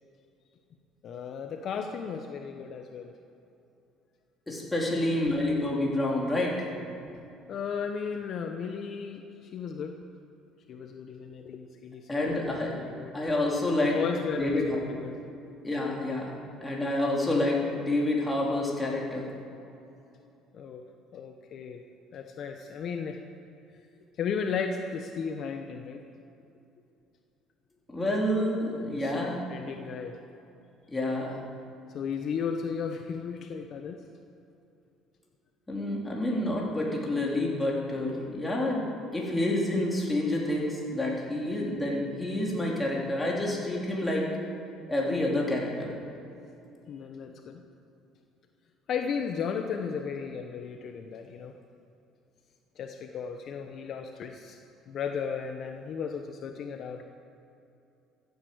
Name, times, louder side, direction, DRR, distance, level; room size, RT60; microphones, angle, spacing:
voice 1, 1.0-3.1 4.9-5.0 7.5-10.0 10.7-12.4 12.7-13.1 13.8-15.2 15.4-15.6 20.5-20.8 21.1-21.8 22.1-23.2 24.2-26.0 28.8-29.2 29.5-30.2 31.9-34.0 46.9-47.6 48.9-51.5 52.8-54.6 54.9-57.0, left 6 dB, 50° left, 5 dB, 1.0 m, -35 dB
voice 2, 4.5-6.7 12.1-12.7 13.1-14.0 14.4-14.8 15.6-19.3 27.9-29.4 30.9-31.4 35.7-44.3 44.9-45.9, left 1 dB, 10° left, -3 dB, 3.9 m, -28 dB
14.5 x 9.6 x 8.0 m, 2.7 s
cardioid pair, 110°, 0 cm